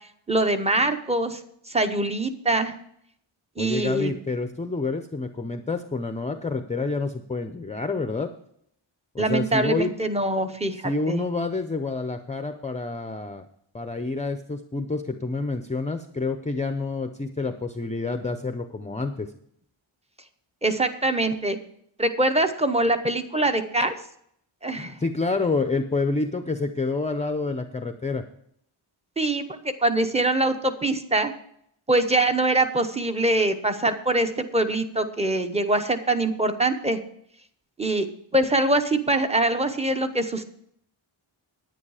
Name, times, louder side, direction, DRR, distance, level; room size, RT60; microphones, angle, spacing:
voice 1, 0.3-1.4 1.7-2.7 3.6-4.1 9.2-11.2 20.6-21.6 22.0-23.9 24.6-25.0 29.2-31.3 31.9-37.0 37.8-38.1 38.3-40.4, right 2 dB, 15° right, 8 dB, 0.8 m, -23 dB
voice 2, 3.6-8.3 9.1-9.9 10.8-13.4 13.7-19.3 25.0-28.2, left 3 dB, 15° left, 8 dB, 0.5 m, -28 dB
9.9 x 9.4 x 4.9 m, 0.69 s
wide cardioid pair, 140°, 49 cm